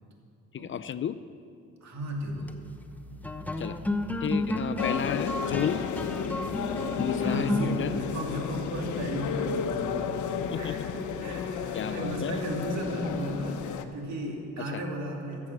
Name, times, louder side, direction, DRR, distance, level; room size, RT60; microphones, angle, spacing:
voice 1, 0.5-1.2 3.6-3.8 4.2-5.8 7.0-8.0 10.4-10.9 11.7-12.5 14.6-14.9, left 9 dB, 40° left, 14 dB, 0.4 m, -33 dB
voice 2, 1.8-2.5 7.2-15.5, right 1 dB, 65° right, 0 dB, 2.6 m, -35 dB
sound 1, 2.3-11.9, left 1 dB, 5° left, 0.8 m, -35 dB
sound 2, 4.8-13.8, left 6 dB, 75° left, 0.9 m, -32 dB
15.5 x 7.4 x 6.7 m, 2.5 s
cardioid pair, 90°, 30 cm